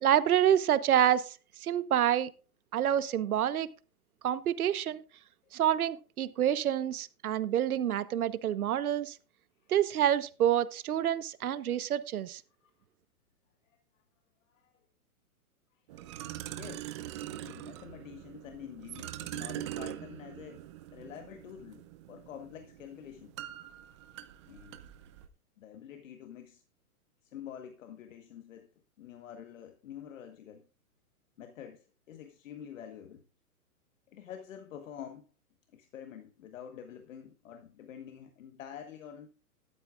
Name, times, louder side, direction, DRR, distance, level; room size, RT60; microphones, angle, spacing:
voice 1, 0.0-1.4 1.6-2.3 2.7-3.7 4.2-5.0 5.5-9.2 9.7-12.4, right 10 dB, 75° right, 1.1 m, -27 dB
voice 2, 15.7-16.1 16.5-17.0 17.3-23.3 24.5-24.8 25.6-26.6 27.2-28.7 29.0-30.7 31.4-33.2 34.1-35.3 35.7-39.3, left 9 dB, 60° left, 1.5 m, -47 dB
sound 1, 15.9-25.3, right 13 dB, 20° right, 0.5 m, -43 dB
13.0 x 12.0 x 2.4 m
hypercardioid pair, 150°, 45 cm